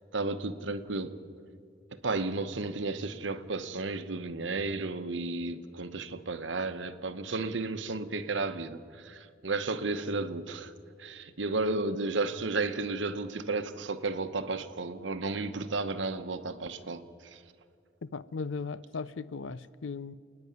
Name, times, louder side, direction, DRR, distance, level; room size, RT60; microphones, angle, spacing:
voice 1, 0.1-1.2 2.0-10.7 11.0-17.4, right 3 dB, 75° right, 1.0 m, -33 dB
voice 2, 18.0-20.1, left 4 dB, 85° left, 0.6 m, -37 dB
28.0 x 9.9 x 9.3 m
head